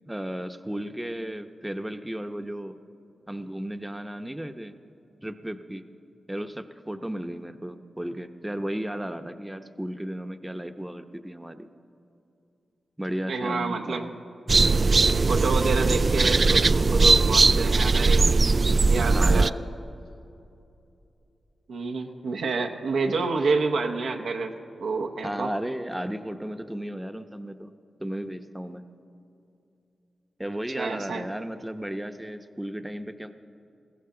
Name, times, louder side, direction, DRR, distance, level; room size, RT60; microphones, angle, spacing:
voice 1, 0.1-2.8 3.3-4.8 5.2-5.8 6.3-11.7 13.0-14.2 19.1-19.7 25.2-27.7 28.0-28.8 30.4-33.3, right 1 dB, 10° right, 8 dB, 0.8 m, -34 dB
voice 2, 13.3-14.0 15.3-18.4 18.9-19.5 21.7-24.5 24.8-25.5 30.7-31.2, right 4 dB, 80° right, 3 dB, 0.9 m, -28 dB
sound 1, 14.5-19.5, right 3 dB, 50° right, 0.3 m, -20 dB
21.0 x 16.0 x 3.8 m, 2.7 s
supercardioid pair, 40°, 0 cm